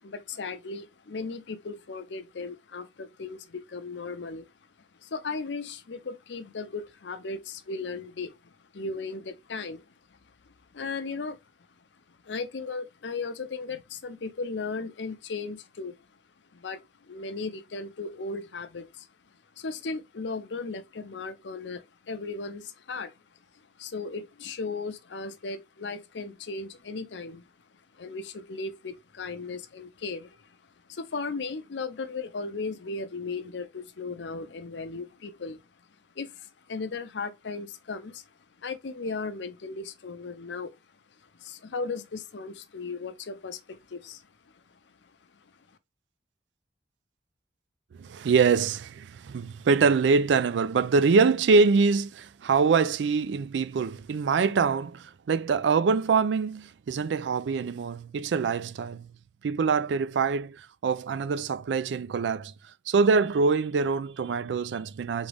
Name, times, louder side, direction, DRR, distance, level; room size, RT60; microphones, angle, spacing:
voice 1, 0.0-4.5 5.0-10.2 10.4-11.4 12.2-16.0 16.5-19.1 19.6-23.1 23.8-27.4 27.9-30.6 30.9-35.6 36.2-38.2 38.6-40.8 41.2-44.3 45.0-45.1, left 4 dB, 75° left, 0.6 m, -36 dB
voice 2, 48.0-59.1 59.4-62.5 62.9-65.3, right 5 dB, 75° right, 0.4 m, -24 dB
3.9 x 3.6 x 3.4 m
head